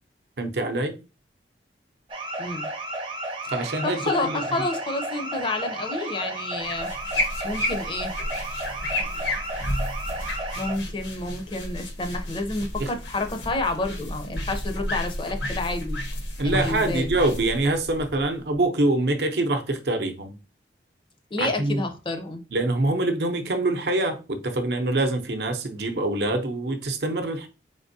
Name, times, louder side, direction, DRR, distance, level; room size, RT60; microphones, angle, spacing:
voice 1, 0.4-0.9 3.5-4.4 12.8-12.9 16.4-20.3 21.4-21.8 22.5-27.5, right 2 dB, 65° right, 0.7 m, -25 dB
sound 1, 2.1-10.8, right 1 dB, 30° right, 0.6 m, -33 dB
voice 2, 2.4-2.7 3.8-8.2 10.6-16.0 16.4-17.1 21.3-22.4, left 2 dB, 30° left, 0.5 m, -29 dB
sound 2, 6.6-18.6, left 1 dB, 85° left, 1.1 m, -32 dB
4.2 x 3.5 x 2.6 m
head